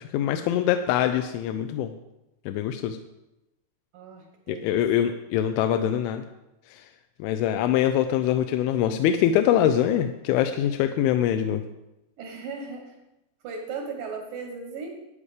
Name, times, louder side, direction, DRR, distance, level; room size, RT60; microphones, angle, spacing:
voice 1, 0.0-1.9 2.5-3.0 4.5-6.3 6.7-6.9 7.2-11.6, left 10 dB, 85° left, 7 dB, 2.9 m, -24 dB
voice 2, 3.9-4.8 12.2-13.0 13.4-15.0, right 4 dB, 75° right, 2 dB, 1.9 m, -37 dB
12.5 x 8.3 x 4.9 m, 0.93 s
omnidirectional pair, 5.7 m